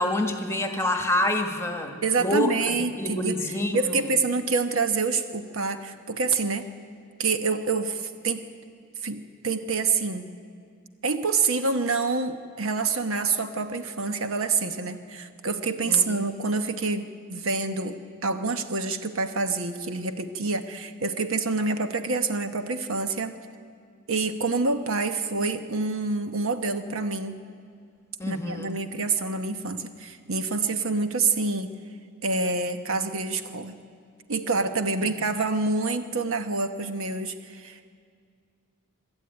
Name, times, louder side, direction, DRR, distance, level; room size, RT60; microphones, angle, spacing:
voice 1, 0.0-2.6 3.0-3.8 15.9-16.3 28.2-28.8 35.1-35.2, left 1 dB, 15° left, 5 dB, 1.5 m, -27 dB
voice 2, 2.0-3.4 3.7-6.7 7.2-8.4 9.0-10.3 11.0-18.0 18.2-23.4 24.1-27.4 28.3-31.7 32.2-33.8 34.3-37.9, right 4 dB, 70° right, 8 dB, 1.0 m, -27 dB
23.5 x 12.5 x 9.6 m, 2.2 s
head